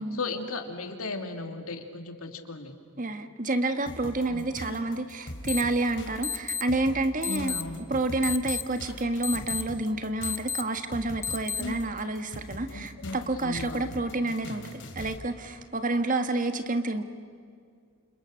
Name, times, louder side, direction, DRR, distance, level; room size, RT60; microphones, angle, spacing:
voice 1, 0.0-2.7 4.3-4.5 7.2-7.9 11.6-11.7 12.7-13.9, left 3 dB, 75° left, 6 dB, 2.8 m, -36 dB
voice 2, 3.0-7.6 7.9-17.0, right 2 dB, 35° right, 8 dB, 1.6 m, -29 dB
sound 1, 3.9-15.2, left 1 dB, 55° left, 3.5 m, -42 dB
sound 2, 5.5-5.6 6.2-6.6 7.2-7.6 8.2-8.6 9.2-9.6 10.2-10.6 11.2-11.6, left 6 dB, 10° left, 0.7 m, -30 dB
30.0 x 28.5 x 6.6 m, 2.2 s
head